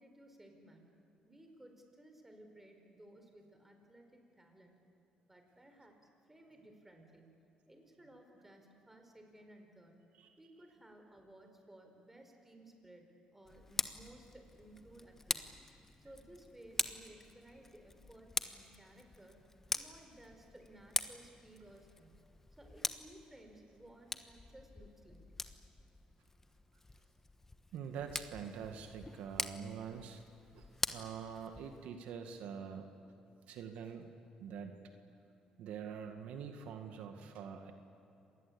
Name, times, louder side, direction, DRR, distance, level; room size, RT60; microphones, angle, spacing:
voice 1, 0.0-4.7 5.2-6.0 6.3-7.4 7.7-10.0 10.4-15.5 16.0-19.4 19.7-22.2 22.6-25.3, right 1 dB, 10° right, 4 dB, 4.6 m, -58 dB
Tick, 13.4-31.9, left 2 dB, 15° left, 1.2 m, -44 dB
voice 2, 27.7-30.2 30.5-32.9 33.5-34.1 34.4-34.8 35.6-37.7, right 7 dB, 80° right, 6 dB, 1.9 m, -45 dB
26.0 x 20.0 x 8.7 m, 2.8 s
cardioid pair, 95°, 2 cm